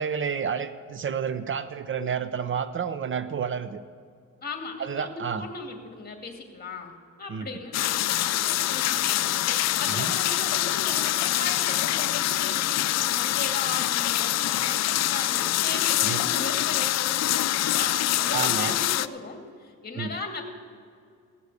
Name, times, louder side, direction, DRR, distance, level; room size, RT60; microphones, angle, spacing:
voice 1, 0.0-3.8 4.8-5.5 7.3-7.5 10.0-10.1 16.0-16.2 18.3-18.8 20.0-20.1, right 7 dB, 40° right, 12 dB, 0.6 m, -30 dB
voice 2, 4.4-9.4 9.8-20.4, left 3 dB, 30° left, 4 dB, 2.2 m, -37 dB
sound 1, 7.7-19.1, left 14 dB, 60° left, 0.5 m, -25 dB
16.5 x 6.6 x 8.3 m, 2.3 s
cardioid pair, 90°, 30 cm